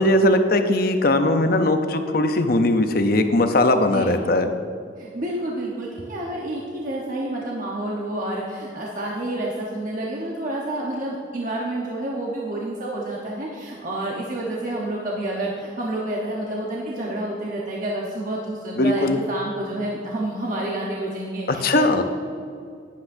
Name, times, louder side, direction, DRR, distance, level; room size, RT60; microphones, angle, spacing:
voice 1, 0.0-4.5 18.8-19.2 21.5-22.0, left 1 dB, 50° left, 7 dB, 0.7 m, -19 dB
voice 2, 3.9-4.3 5.0-22.0, right 1 dB, 45° right, -3 dB, 1.0 m, -29 dB
11.5 x 10.0 x 2.7 m, 2.3 s
head